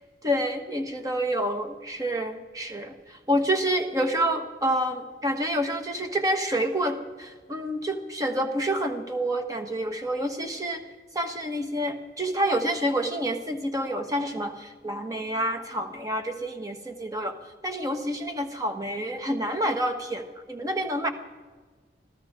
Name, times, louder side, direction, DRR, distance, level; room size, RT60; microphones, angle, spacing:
voice 1, 0.2-10.8 11.1-17.3 17.6-21.1, right 1 dB, 20° right, 5 dB, 1.4 m, -28 dB
25.5 x 15.0 x 3.8 m, 1.4 s
head